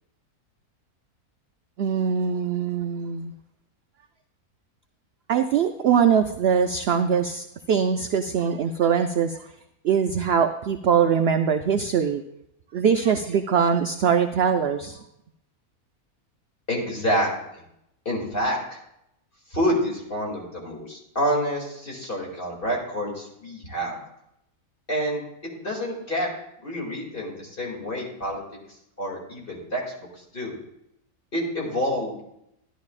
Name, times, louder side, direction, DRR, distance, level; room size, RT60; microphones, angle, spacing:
voice 1, 1.8-3.3 5.3-9.4 9.8-12.2 12.7-15.0, right 7 dB, 75° right, 7 dB, 0.5 m, -22 dB
voice 2, 16.7-17.3 17.5-17.6 18.0-18.6 19.5-24.0 24.9-26.3 26.6-28.4 29.0-30.5 31.3-32.2, equal, 35° left, -3 dB, 2.6 m, -28 dB
14.0 x 11.0 x 2.4 m, 0.80 s
omnidirectional pair, 1.6 m